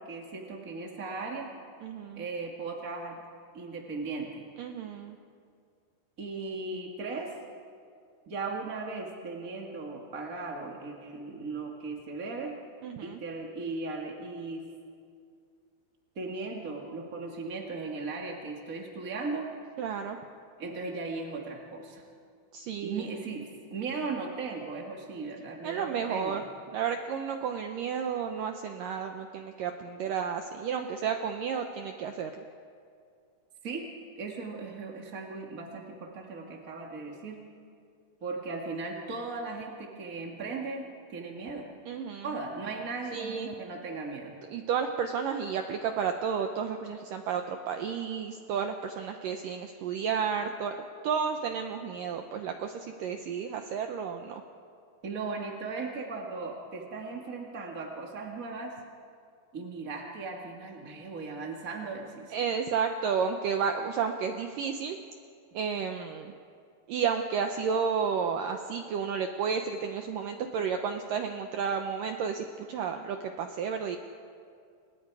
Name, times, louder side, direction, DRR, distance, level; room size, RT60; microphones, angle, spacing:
voice 1, 0.0-1.5 2.1-3.2 3.5-4.4 6.2-7.3 8.3-12.5 13.0-14.7 16.1-19.5 20.6-22.0 22.8-26.4 33.6-33.9 34.2-37.4 38.2-41.7 42.2-44.3 55.0-58.7 59.5-62.3, right 3 dB, 35° right, 0 dB, 1.3 m, -37 dB
voice 2, 1.8-2.3 4.6-5.2 12.8-13.2 19.8-20.2 22.5-23.1 25.6-26.4 26.7-32.4 41.9-42.4 43.1-43.5 44.5-50.8 51.0-54.4 62.3-65.0 65.5-66.3 66.9-74.0, right 6 dB, 75° right, 5 dB, 2.0 m, -32 dB
29.5 x 26.5 x 4.8 m, 2.3 s
omnidirectional pair, 4.9 m